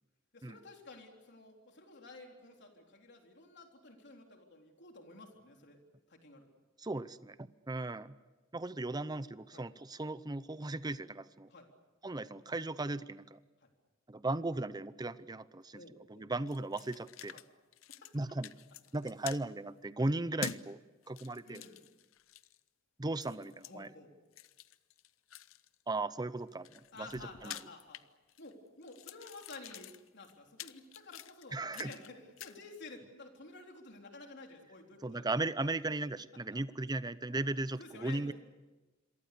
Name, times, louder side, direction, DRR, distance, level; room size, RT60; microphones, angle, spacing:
voice 1, 0.3-5.8 6.1-6.5 9.5-9.7 11.5-11.7 13.6-13.7 15.7-16.3 17.3-17.5 17.9-18.2 19.2-19.3 20.0-20.1 21.4-21.8 23.6-24.1 26.9-28.0 28.4-35.3 37.8-38.3, left 3 dB, 60° left, 2 dB, 3.8 m, -52 dB
voice 2, 6.8-8.1 8.5-11.5 12.0-13.4 14.1-15.8 16.1-17.4 18.1-18.5 18.9-20.8 21.1-21.6 23.0-23.9 25.9-27.1 27.4-27.5 31.5-31.9 35.0-38.3, right 2 dB, 20° right, 15 dB, 0.7 m, -37 dB
sound 1, 16.5-17.5 17.7-18.2 18.4-19.4 20.4-20.6 21.0-22.6 23.2-23.7 24.3-25.7 26.4-28.5 28.8-32.1 32.4-32.6, left 9 dB, 75° left, 0.7 m, -47 dB
27.5 x 23.5 x 6.9 m, 1.2 s
head